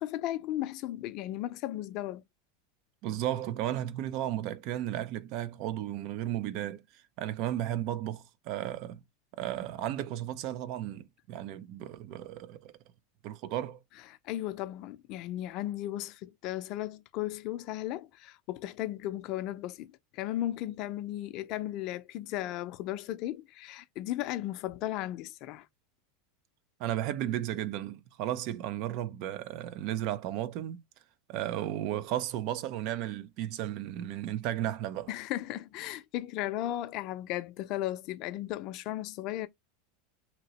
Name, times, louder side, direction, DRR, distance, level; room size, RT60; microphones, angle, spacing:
voice 1, 0.0-2.2 14.2-25.7 35.1-39.5, left 14 dB, 55° left, 0.5 m, -35 dB
voice 2, 3.0-6.8 7.2-9.0 9.4-12.7 13.2-13.8 26.8-30.8 31.3-35.1, right 12 dB, 55° right, 0.4 m, -34 dB
2.9 x 2.7 x 2.9 m
hypercardioid pair, 110°, 0 cm